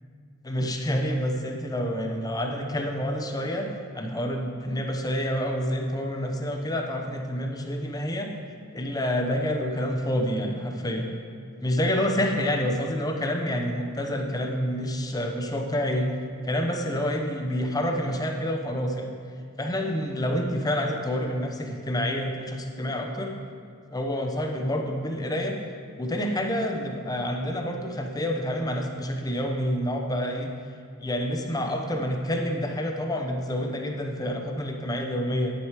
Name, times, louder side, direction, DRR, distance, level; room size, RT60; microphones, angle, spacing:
voice 1, 0.4-8.3 8.7-11.1 11.6-16.1 16.4-19.1 19.6-23.3 23.9-25.6 26.0-30.5 31.0-35.5, equal, 15° left, 3 dB, 0.7 m, -28 dB
11.0 x 6.6 x 4.8 m, 2.1 s
head